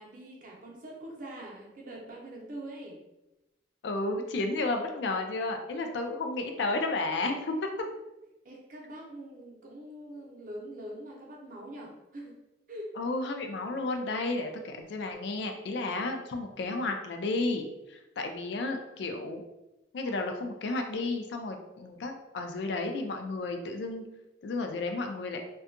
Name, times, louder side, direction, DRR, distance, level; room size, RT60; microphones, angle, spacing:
voice 1, 0.0-3.0 8.4-12.4 12.7-12.9, right 1 dB, 45° right, -1 dB, 0.6 m, -43 dB
voice 2, 3.8-7.7 13.0-19.4 19.9-24.0 24.4-25.4, left 2 dB, 70° left, 4 dB, 0.4 m, -32 dB
2.6 x 2.2 x 2.5 m, 0.96 s
head